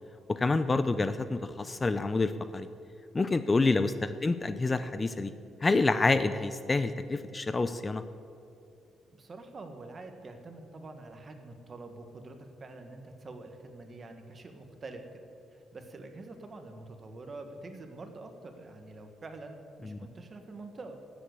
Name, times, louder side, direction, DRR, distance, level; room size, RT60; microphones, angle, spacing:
voice 1, 0.3-2.7 3.1-5.3 5.6-8.0 19.8-20.0, left 3 dB, 25° left, 12 dB, 0.5 m, -28 dB
voice 2, 9.1-15.0 15.5-21.0, right 2 dB, 35° right, 6 dB, 1.6 m, -46 dB
13.0 x 7.8 x 8.3 m, 2.6 s
cardioid pair, 90°, 0 cm